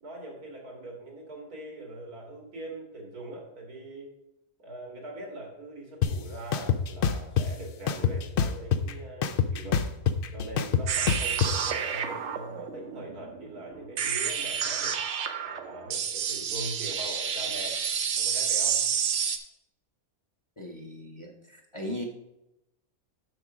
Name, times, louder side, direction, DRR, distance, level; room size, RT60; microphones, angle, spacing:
voice 1, 0.0-4.1 4.6-9.8 10.3-15.0 15.4-17.8 18.2-18.8, right 1 dB, 90° right, 1 dB, 2.6 m, -42 dB
sound 1, 6.0-6.1 6.5-7.5 7.9-8.9 9.2-11.5, left 8 dB, 75° left, 0.5 m, -25 dB
sound 2, 10.9-19.4, right 7 dB, 60° right, 0.9 m, -30 dB
voice 2, 20.6-22.0, left 1 dB, 25° left, 2 dB, 0.8 m, -38 dB
7.8 x 5.9 x 5.0 m, 0.89 s
omnidirectional pair, 1.5 m